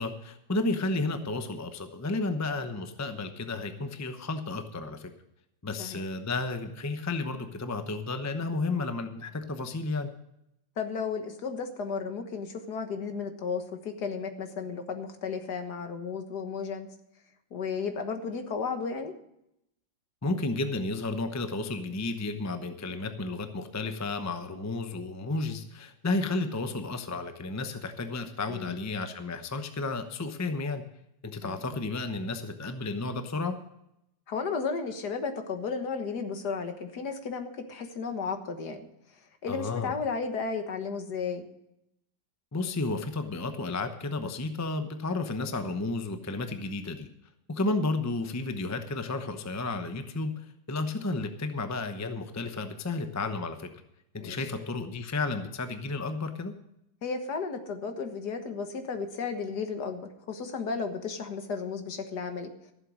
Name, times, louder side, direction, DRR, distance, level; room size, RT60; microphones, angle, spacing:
voice 1, 0.0-5.1 5.6-10.1 20.2-30.8 31.2-33.6 39.5-39.9 42.5-47.1 47.5-53.7 54.1-56.5, left 3 dB, 25° left, 8 dB, 0.3 m, -32 dB
voice 2, 10.8-16.9 17.5-19.1 28.5-28.8 31.4-31.6 34.3-38.9 39.4-41.5 54.2-54.4 57.0-62.7, left 5 dB, 60° left, 6 dB, 1.9 m, -34 dB
14.5 x 7.7 x 6.3 m, 0.80 s
omnidirectional pair, 2.0 m